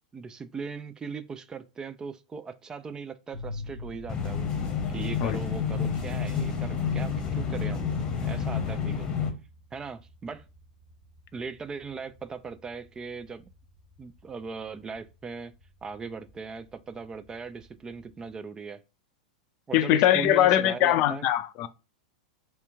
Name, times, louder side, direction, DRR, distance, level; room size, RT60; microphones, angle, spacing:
voice 1, 0.0-4.5 4.9-7.9 8.2-9.1 9.7-10.4 11.3-13.5 14.0-15.5 15.8-18.8 19.7-21.3, right 5 dB, 15° right, 0.4 m, -39 dB
sound 1, 3.3-18.3, left 2 dB, 55° right, 1.2 m, -47 dB
sound 2, 4.1-9.3, left 6 dB, 20° left, 1.0 m, -29 dB
voice 2, 19.7-21.7, left 12 dB, 40° left, 0.4 m, -22 dB
3.2 x 2.9 x 3.4 m
figure-of-eight pair, 95°, 4 cm